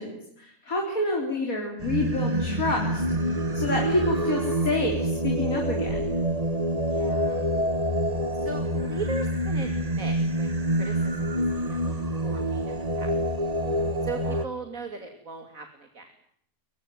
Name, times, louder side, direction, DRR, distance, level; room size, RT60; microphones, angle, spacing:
voice 1, 0.0-6.1, left 2 dB, 60° left, 1 dB, 4.5 m, -29 dB
Singing, 1.8-14.4, right 1 dB, 25° right, 1.7 m, -27 dB
voice 2, 6.9-7.4 8.4-13.1 14.0-16.1, right 3 dB, 55° right, 6 dB, 3.3 m, -38 dB
23.0 x 21.0 x 9.3 m, 0.69 s
omnidirectional pair, 1.7 m